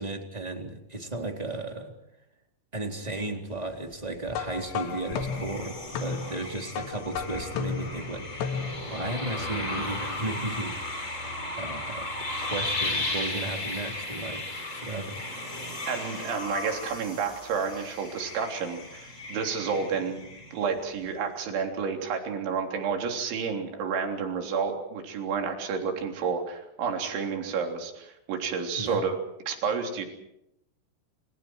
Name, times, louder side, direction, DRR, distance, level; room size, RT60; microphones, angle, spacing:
voice 1, 0.0-1.9 2.7-8.3 8.9-11.2 11.5-14.4 14.7-15.2 28.8-29.0, right 2 dB, 10° right, 2 dB, 2.8 m, -35 dB
sound 1, 4.3-9.0, left 6 dB, 70° left, 3.7 m, -34 dB
sound 2, 4.6-20.9, left 2 dB, 15° left, 6.2 m, -35 dB
voice 2, 15.9-20.2 20.5-29.2 29.5-30.1, right 5 dB, 65° right, 3 dB, 5.8 m, -30 dB
29.5 x 29.0 x 4.7 m, 0.81 s
omnidirectional pair, 6.0 m